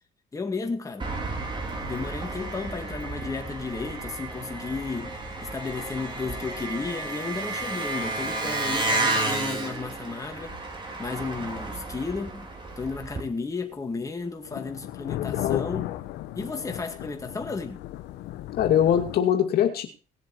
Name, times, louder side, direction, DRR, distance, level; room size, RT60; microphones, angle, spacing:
voice 1, 0.3-1.1 1.8-10.6 11.0-12.5 12.8-15.9 16.3-17.8, left 4 dB, 20° left, 2.2 m, -33 dB
Engine, 1.0-13.2, right 2 dB, 30° right, 3.3 m, -32 dB
sound 1, 4.9-19.2, left 14 dB, 85° left, 1.0 m, -38 dB
voice 2, 15.1-15.6 18.6-19.9, left 10 dB, 65° left, 2.3 m, -22 dB
18.5 x 7.4 x 4.5 m
cardioid pair, 110°, 17 cm